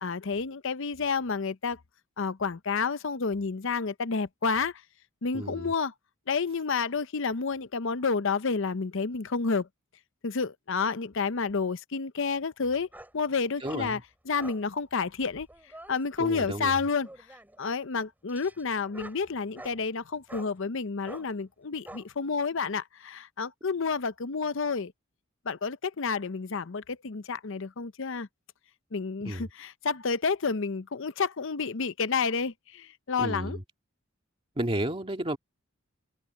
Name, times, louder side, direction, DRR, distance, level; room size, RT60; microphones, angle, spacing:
voice 1, 0.0-1.8 2.2-4.7 5.2-5.9 6.3-9.7 10.2-12.9 13.1-14.0 14.3-15.5 15.9-17.1 17.6-24.9 25.5-28.3 28.9-33.6, left 5 dB, 65° left, 0.7 m, -30 dB
voice 2, 5.3-5.7 13.6-14.0 16.2-16.9 29.2-29.5 33.2-33.6 34.6-35.4, right 1 dB, 25° right, 2.1 m, -32 dB
sound 1, 12.9-13.2 13.6-13.8 14.4-14.6 15.2-16.0 17.0-17.6 18.3-19.8 20.3-20.5 21.0-21.3 21.8-22.1, right 1 dB, 10° right, 4.1 m, -46 dB
head